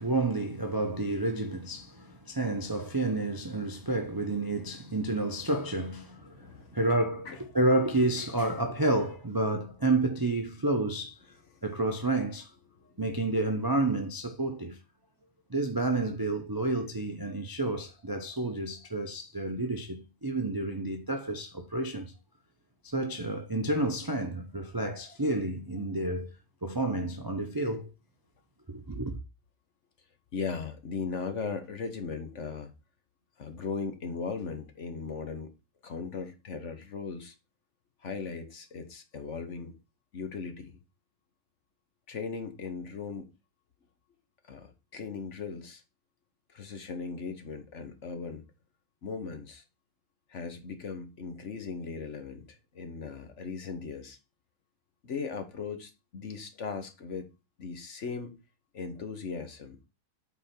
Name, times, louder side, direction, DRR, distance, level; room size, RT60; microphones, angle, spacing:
voice 1, 0.0-11.2 11.6-12.5 13.0-14.8 15.5-22.1 22.8-26.3 26.6-27.9 28.7-29.2, right 2 dB, 25° right, 0.4 m, -30 dB
voice 2, 6.3-6.8 7.2-7.4 11.5-11.6 12.7-12.9 30.3-32.7 33.4-35.5 35.8-37.3 38.0-39.8 40.1-40.8 42.1-43.3 44.4-45.8 46.5-48.5 49.0-49.6 50.3-54.2 55.0-57.3 57.6-58.4 58.7-59.8, left 5 dB, 50° left, 1.2 m, -38 dB
8.3 x 4.4 x 4.3 m
omnidirectional pair, 1.8 m